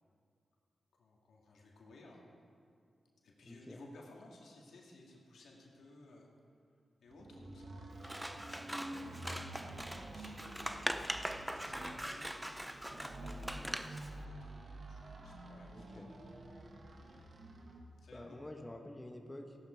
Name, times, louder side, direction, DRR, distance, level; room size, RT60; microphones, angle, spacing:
voice 1, 1.0-2.2 3.2-6.3 7.0-9.3 10.0-16.3 18.0-18.4, left 2 dB, 80° left, -1 dB, 2.2 m, -59 dB
voice 2, 3.5-3.8 15.7-16.1 18.1-19.6, left 1 dB, 20° left, 3 dB, 1.2 m, -48 dB
sound 1, 7.1-17.9, right 1 dB, 65° right, 1.7 m, -49 dB
Scissors, 8.0-14.1, equal, 10° right, 0.7 m, -42 dB
15.5 x 11.5 x 4.6 m, 2.3 s
supercardioid pair, 40°, 0 cm